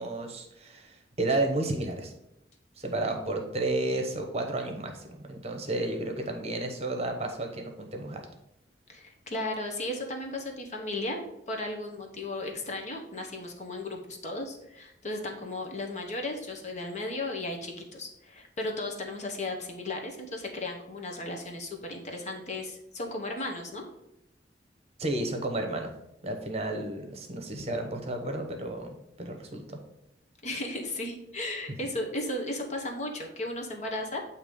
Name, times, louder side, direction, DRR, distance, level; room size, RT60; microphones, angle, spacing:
voice 1, 0.0-2.1 2.8-8.2 25.0-25.9 26.2-28.9 29.2-29.8, right 2 dB, 35° right, 3 dB, 0.9 m, -32 dB
voice 2, 8.9-23.8 30.4-34.2, left 2 dB, 40° left, 2 dB, 1.0 m, -35 dB
8.0 x 2.9 x 5.2 m, 0.84 s
head